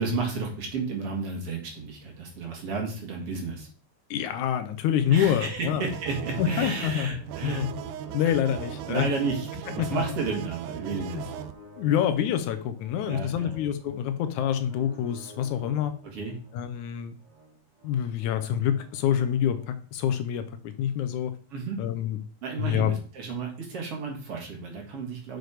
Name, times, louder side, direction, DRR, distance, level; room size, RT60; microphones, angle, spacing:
voice 1, 0.0-3.7 5.1-7.6 8.2-8.3 8.9-11.3 13.0-13.5 16.1-16.4 21.5-21.8 22.4-25.4, right 4 dB, 50° right, 1 dB, 2.7 m, -32 dB
voice 2, 4.1-5.9 6.4-7.1 7.4-7.7 8.1-9.1 9.7-10.0 11.1-11.3 11.8-15.9 16.5-17.1 17.8-21.3 21.8-22.2 22.6-23.0, left 10 dB, 75° left, 10 dB, 2.1 m, -27 dB
sound 1, 5.7-19.7, left 1 dB, 30° right, 0.9 m, -51 dB
sound 2, 5.9-11.5, right 11 dB, 85° right, 2.2 m, -38 dB
6.5 x 6.3 x 4.8 m, 0.42 s
omnidirectional pair, 3.6 m